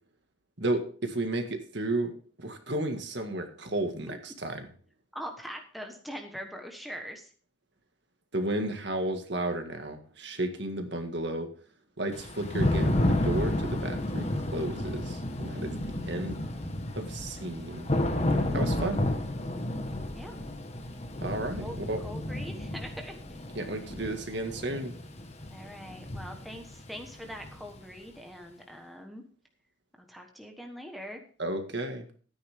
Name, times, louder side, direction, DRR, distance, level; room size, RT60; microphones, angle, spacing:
voice 1, 0.6-2.1 2.4-4.7 8.3-11.5 12.0-16.4 17.0-17.9 18.5-19.0 21.2-22.0 23.6-24.9 31.4-32.1, right 2 dB, 55° right, 5 dB, 1.8 m, -33 dB
voice 2, 5.1-7.3 20.1-20.4 21.5-21.8 22.0-23.4 25.5-29.2 30.0-31.2, equal, ahead, 2 dB, 1.3 m, -42 dB
Thunder / Rain, 12.1-27.9, left 1 dB, 30° left, 1.3 m, -31 dB
13.5 x 9.5 x 3.6 m, 0.42 s
head